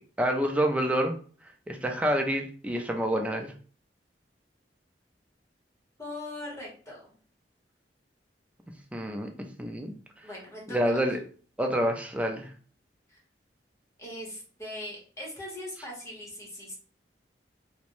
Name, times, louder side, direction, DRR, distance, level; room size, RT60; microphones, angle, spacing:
voice 1, 0.2-1.1 1.7-3.5 8.9-9.3 9.6-9.9 10.7-11.2 11.6-12.5, equal, 10° right, 3 dB, 0.3 m, -27 dB
voice 2, 6.0-7.1 10.2-11.0 13.1-13.2 14.0-16.7, left 1 dB, 20° left, -3 dB, 0.9 m, -40 dB
3.0 x 2.0 x 2.6 m, 0.42 s
head